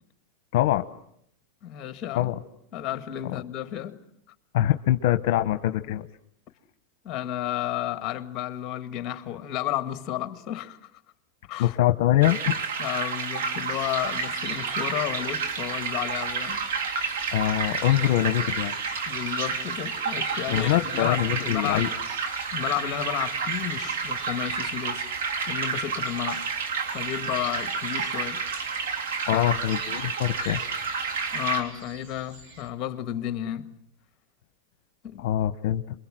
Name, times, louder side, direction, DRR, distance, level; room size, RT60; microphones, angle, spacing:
voice 1, 0.5-0.8 2.1-2.3 4.5-6.1 11.6-12.7 17.3-18.7 20.5-21.9 29.3-30.6 35.2-35.8, left 13 dB, 65° left, 0.9 m, -23 dB
voice 2, 1.6-2.3 2.7-4.0 7.0-10.9 11.5-11.8 12.8-16.7 19.1-21.9 22.5-25.1 25.5-26.5 26.9-28.5 29.3-29.5 31.3-33.8 35.0-35.3, left 12 dB, 35° left, 1.9 m, -32 dB
sound 1, 12.2-31.6, right 5 dB, 80° right, 3.7 m, -30 dB
sound 2, 13.7-32.7, right 2 dB, 45° right, 4.3 m, -48 dB
27.5 x 23.0 x 7.7 m
supercardioid pair, 140°, 0 cm